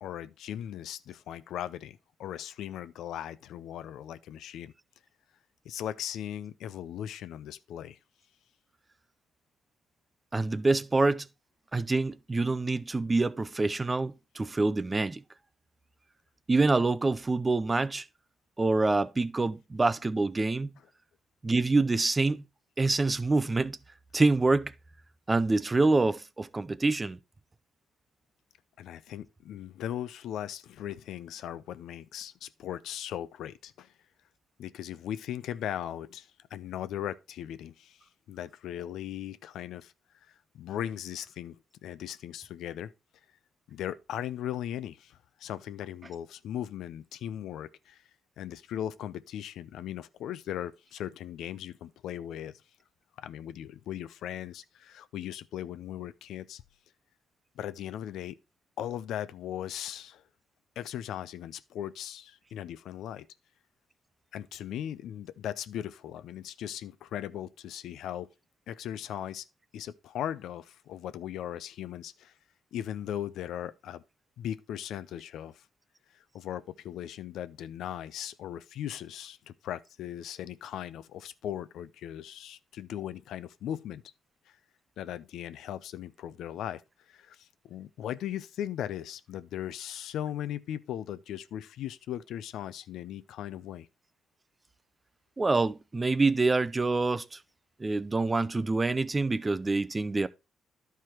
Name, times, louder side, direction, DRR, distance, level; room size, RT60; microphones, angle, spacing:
voice 1, 0.0-4.7 5.6-8.0 28.8-33.9 34.6-38.0 38.3-39.9 40.5-42.9 43.7-48.0 48.4-52.6 53.2-56.6 57.6-58.4 58.8-60.2 60.8-63.3 64.3-68.3 68.7-69.5 69.7-72.3 72.7-74.0 74.4-75.6 76.3-84.0 84.5-84.6 85.0-86.8 87.1-93.9, left 11 dB, 80° left, 0.5 m, -38 dB
voice 2, 10.3-11.3 11.7-15.2 16.5-18.0 18.6-20.7 21.4-22.4 22.8-23.8 24.1-24.7 25.3-27.2 95.4-97.4 97.8-100.3, right 3 dB, 25° right, 0.5 m, -26 dB
11.0 x 4.7 x 4.4 m
cardioid pair, 90°, 0 cm